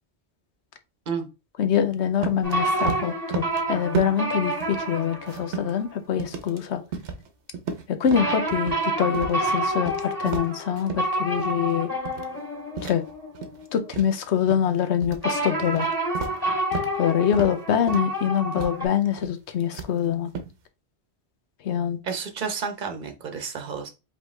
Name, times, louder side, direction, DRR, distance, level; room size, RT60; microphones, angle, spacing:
voice 1, 1.6-6.8 7.9-11.9 12.8-13.0 13.7-15.9 17.0-20.3 21.6-22.0, left 8 dB, 75° left, 9 dB, 1.0 m, -24 dB
sound 1, 2.2-2.5 2.8-3.6 3.9-4.3 4.6-5.8 6.2-6.6 6.9-7.3 7.5-8.8 9.1-9.4 9.7-11.1 11.4-11.7 12.1-12.4 12.8-13.6 13.9-14.7 15.0-15.3 15.6-17.0 17.3-17.6 17.9-18.2 18.6-18.8 19.1-19.4 19.7-20.5, right 6 dB, 80° right, 1.1 m, -33 dB
sound 2, 2.4-5.9 8.1-13.9 15.2-18.9, right 1 dB, 10° left, 2.3 m, -28 dB
voice 2, 22.0-23.9, right 5 dB, 50° right, 6 dB, 1.0 m, -31 dB
5.1 x 3.1 x 3.2 m, 0.28 s
omnidirectional pair, 1.1 m